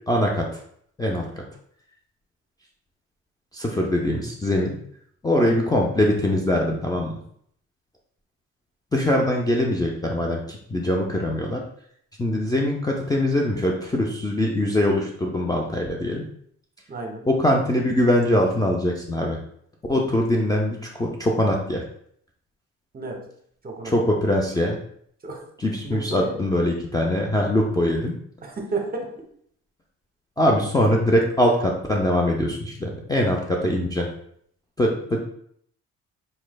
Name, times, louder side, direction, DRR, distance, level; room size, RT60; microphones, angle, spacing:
voice 1, 0.1-0.5 1.0-1.4 3.5-4.7 5.2-7.2 8.9-11.6 12.2-16.2 17.3-19.4 19.9-21.8 23.8-24.8 25.6-28.1 30.4-34.1 34.8-35.2, left 1 dB, 15° left, -1 dB, 0.4 m, -22 dB
voice 2, 16.9-17.2 22.9-23.2 23.6-24.3 25.2-25.4 25.8-26.4 28.4-29.1, right 3 dB, 30° right, 2 dB, 0.8 m, -32 dB
4.1 x 3.0 x 2.2 m, 0.65 s
cardioid pair, 90°, 30 cm